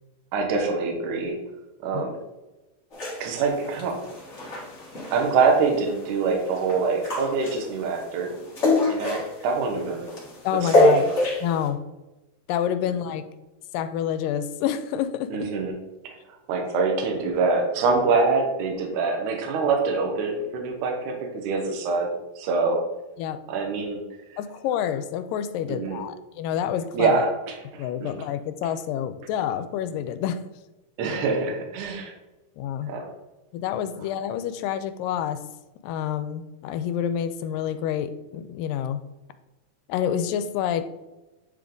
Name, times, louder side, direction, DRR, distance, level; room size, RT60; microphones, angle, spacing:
voice 1, 0.3-1.4 1.8-2.2 3.2-4.0 5.1-8.3 8.9-10.1 10.6-11.1 15.3-15.7 16.0-16.1 16.5-22.1 22.4-22.8 23.5-24.0 25.7-26.0 26.9-27.3 28.0-28.1 31.0-32.1 32.9-33.0, right 4 dB, 70° right, 2 dB, 2.4 m, -24 dB
sound 1, 2.9-11.7, left 1 dB, 40° left, 1.1 m, -26 dB
voice 2, 10.4-11.1 11.4-11.8 12.5-13.2 13.7-15.5 23.2-23.4 24.4-27.1 27.8-30.4 32.6-33.0 33.5-35.4 35.8-39.1 39.9-40.9, left 9 dB, 85° left, 10 dB, 2.2 m, -28 dB
10.0 x 3.5 x 3.8 m, 1.1 s
omnidirectional pair, 3.9 m